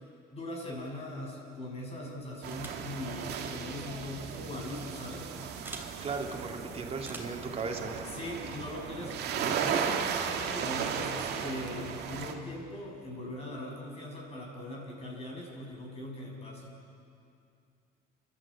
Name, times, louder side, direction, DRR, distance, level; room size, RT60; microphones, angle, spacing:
voice 1, 0.3-5.3 8.0-16.7, left 1 dB, 35° left, -1 dB, 7.0 m, -40 dB
sound 1, 2.4-12.3, right 7 dB, 80° right, 2.1 m, -35 dB
sound 2, 2.5-2.9 4.2-4.4 5.6-5.9 7.0-7.4, right 2 dB, 10° right, 3.0 m, -45 dB
voice 2, 6.0-8.0, right 4 dB, 35° right, 2 dB, 2.9 m, -36 dB
30.0 x 12.5 x 8.8 m, 2.5 s
cardioid pair, 110°, 17 cm